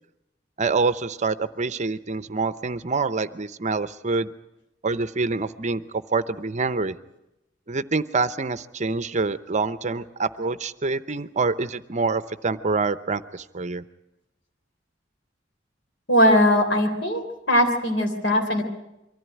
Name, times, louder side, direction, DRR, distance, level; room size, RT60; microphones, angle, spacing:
voice 1, 0.6-4.3 4.8-7.0 7.7-13.8, right 4 dB, 40° right, 14 dB, 0.7 m, -26 dB
voice 2, 16.1-17.2 17.5-18.6, equal, 75° left, 4 dB, 3.6 m, -19 dB
23.5 x 14.5 x 9.2 m, 0.91 s
head